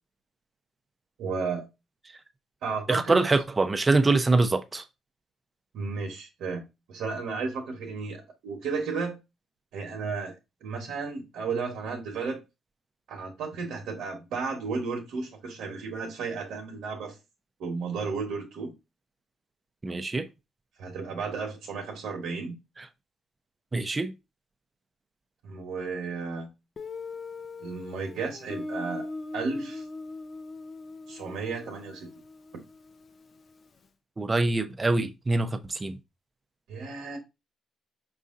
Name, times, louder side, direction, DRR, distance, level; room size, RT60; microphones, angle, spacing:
voice 1, 1.2-1.7 2.6-3.2 5.7-9.2 9.7-10.3 10.6-12.4 13.1-17.2 17.6-18.7 20.8-22.6 25.4-26.5 27.6-29.1 29.3-29.8 31.1-32.1 36.7-37.2, right 4 dB, 80° right, 1.2 m, -33 dB
voice 2, 2.9-4.8 19.8-20.3 23.7-24.1 34.2-36.0, right 3 dB, 25° right, 0.6 m, -24 dB
Guitar, 26.8-33.4, left 3 dB, 45° left, 0.6 m, -40 dB
4.8 x 2.7 x 3.6 m
cardioid pair, 90°, 0 cm